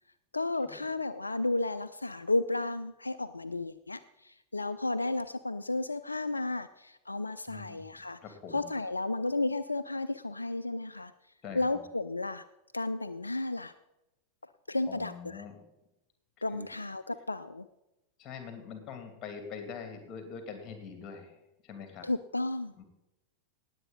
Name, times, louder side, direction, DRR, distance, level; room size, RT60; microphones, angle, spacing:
voice 1, 0.3-8.2 8.5-11.1 11.6-12.4 12.7-13.7 14.7-15.1 16.4-17.7 22.0-22.8, left 2 dB, 80° left, 12 dB, 0.4 m, -33 dB
voice 2, 7.5-8.7 11.4-11.8 14.9-15.6 16.5-16.6 18.2-22.1 22.7-22.8, left 6 dB, 30° left, 6 dB, 2.8 m, -44 dB
19.0 x 8.2 x 4.1 m, 0.92 s
figure-of-eight pair, 90°, 0 cm